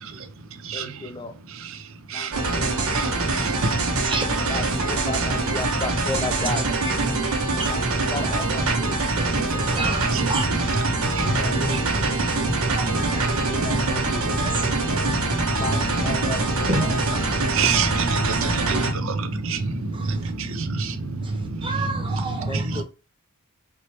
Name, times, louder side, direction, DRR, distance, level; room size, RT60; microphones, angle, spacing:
voice 1, 0.7-1.3 2.1-3.3 4.4-6.7 7.6-10.0 11.2-11.9 13.5-14.3 15.6-16.9 22.5-22.8, left 3 dB, 20° left, 0.4 m, -34 dB
sound 1, 2.3-18.9, right 2 dB, 85° right, 1.3 m, -24 dB
voice 2, 6.4-7.0 7.6-7.7 9.8-10.4 12.7-13.3 14.4-14.5 16.7-16.9 21.6-22.8, right 2 dB, 25° right, 1.1 m, -29 dB
voice 3, 17.1-19.6 20.4-20.9 22.4-22.8, right 5 dB, 65° right, 0.6 m, -26 dB
4.7 x 3.0 x 3.0 m
head